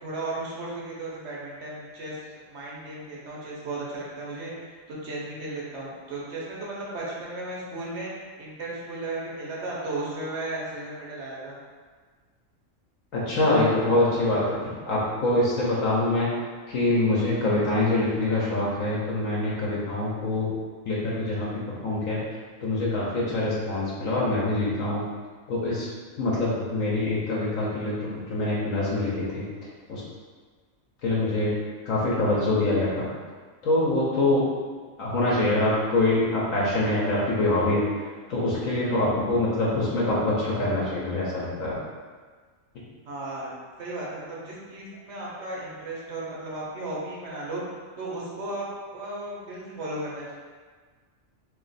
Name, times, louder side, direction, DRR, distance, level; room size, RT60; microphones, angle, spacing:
voice 1, 0.0-4.5 4.9-8.1 8.4-11.6 43.0-43.5 43.8-47.6 48.0-48.7 48.9-50.3, right 2 dB, 60° right, -5 dB, 1.1 m, -35 dB
voice 2, 13.1-14.6 14.9-16.3 16.7-20.5 20.9-21.5 21.8-22.2 22.6-25.0 25.5-25.9 26.2-29.4 29.9-30.0 31.0-31.5 31.8-33.1 33.6-34.5 35.0-37.8 38.3-41.8, left 2 dB, 75° left, -6 dB, 1.1 m, -24 dB
3.0 x 2.9 x 4.0 m, 1.5 s
omnidirectional pair, 1.4 m